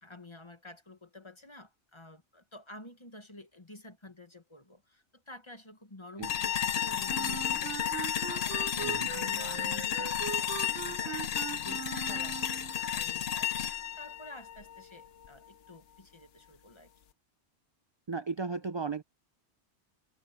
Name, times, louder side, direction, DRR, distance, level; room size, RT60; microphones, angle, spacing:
voice 1, 0.0-16.9, left 1 dB, 25° left, 1.6 m, -50 dB
sound 1, 6.2-15.3, left 10 dB, 65° left, 1.0 m, -32 dB
Wind instrument woodwind instrument, 7.1-12.8, right 11 dB, 80° right, 1.0 m, -41 dB
voice 2, 8.7-9.1 18.1-19.0, right 4 dB, 35° right, 0.4 m, -35 dB
omnidirectional pair, 1.1 m